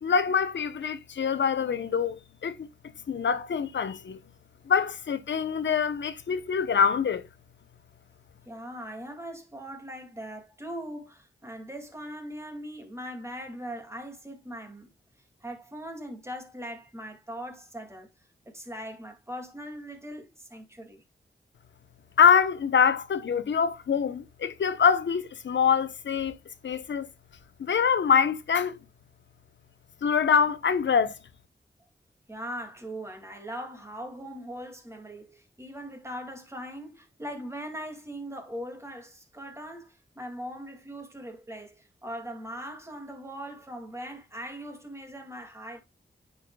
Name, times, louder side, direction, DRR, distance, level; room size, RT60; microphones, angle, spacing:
voice 1, 0.0-2.7 3.1-4.2 4.7-7.2 22.2-26.4 26.6-27.1 27.6-28.8 30.0-31.1, left 6 dB, 85° left, 0.8 m, -24 dB
voice 2, 8.5-14.9 15.4-18.1 18.5-21.0 32.3-45.8, equal, 15° right, 2.2 m, -40 dB
9.4 x 5.7 x 2.2 m
wide cardioid pair, 90°, 18 cm